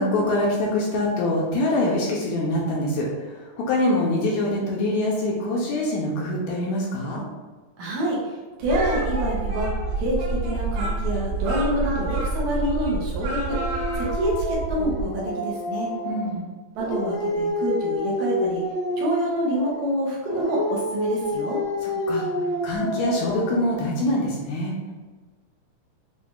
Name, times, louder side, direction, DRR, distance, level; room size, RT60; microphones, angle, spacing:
voice 1, 0.0-7.2 16.1-16.5 21.8-22.3 22.6-24.9, left 1 dB, 80° left, -3 dB, 1.8 m, -24 dB
voice 2, 7.8-8.2 8.6-9.7 10.0-13.6 14.0-15.1 15.4-15.9 16.8-18.6 19.0-21.6, right 1 dB, 70° right, -4 dB, 2.1 m, -27 dB
sound 1, 8.6-15.0, right 3 dB, 40° right, 1.2 m, -28 dB
Speech, 8.7-14.2, right 1 dB, 90° right, 2.5 m, -34 dB
Dog, 13.5-16.3 16.7-19.8 20.3-23.8, left 1 dB, 60° left, 1.0 m, -28 dB
6.9 x 2.5 x 2.4 m, 1.3 s
omnidirectional pair, 3.6 m